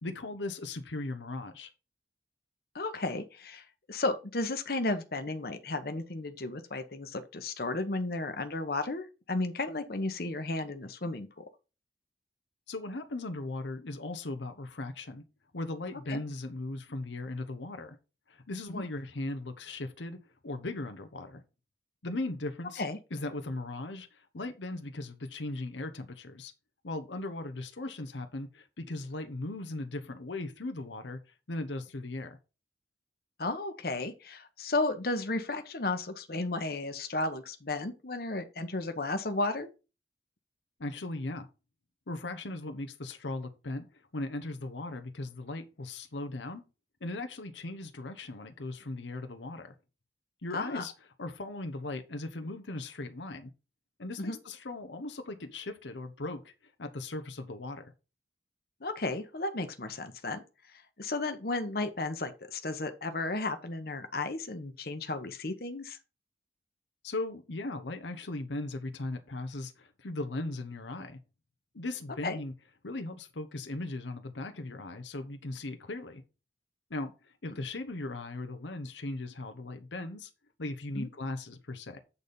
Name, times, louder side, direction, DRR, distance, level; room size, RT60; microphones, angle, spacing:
voice 1, 0.0-1.7 12.7-15.2 15.5-18.0 18.3-21.4 22.0-22.8 23.1-26.5 26.8-32.4 40.8-41.5 42.1-46.6 47.0-49.7 50.4-50.9 51.2-53.5 54.0-57.9 67.0-71.2 71.7-72.5 72.8-76.2 76.9-80.3 80.6-82.0, left 2 dB, 85° left, 0.9 m, -38 dB
voice 2, 2.7-11.5 16.1-16.2 18.7-18.8 22.8-23.0 33.4-39.7 50.5-50.8 54.2-54.4 58.8-60.4 60.7-66.0 72.2-72.4 80.9-81.1, left 2 dB, 55° left, 1.0 m, -34 dB
8.3 x 4.1 x 5.3 m
head